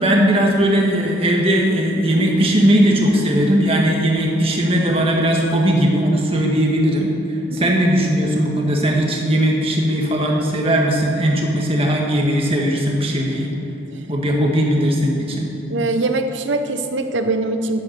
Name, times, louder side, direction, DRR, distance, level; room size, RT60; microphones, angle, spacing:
voice 1, 0.0-7.1 7.5-13.5 14.1-15.5, equal, 30° right, -1 dB, 1.6 m, -18 dB
voice 2, 15.7-17.8, right 2 dB, 75° right, 8 dB, 0.8 m, -22 dB
11.0 x 8.3 x 6.7 m, 2.9 s
head